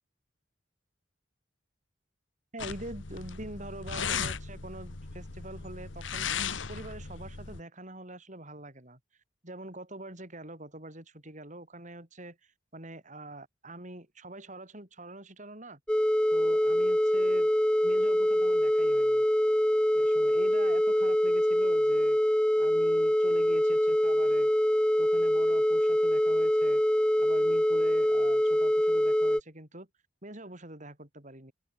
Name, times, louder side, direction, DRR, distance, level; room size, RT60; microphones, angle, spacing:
voice 1, 2.5-6.3 6.7-9.0 9.4-15.8 16.3-17.5 17.8-19.3 19.9-24.5 25.0-26.8 27.2-29.9 30.2-31.5, right 1 dB, 40° right, 7.6 m, -45 dB
sound 1, 2.6-7.6, left 6 dB, 80° left, 1.5 m, -37 dB
sound 2, 15.9-29.4, equal, 5° left, 0.5 m, -24 dB
open air
head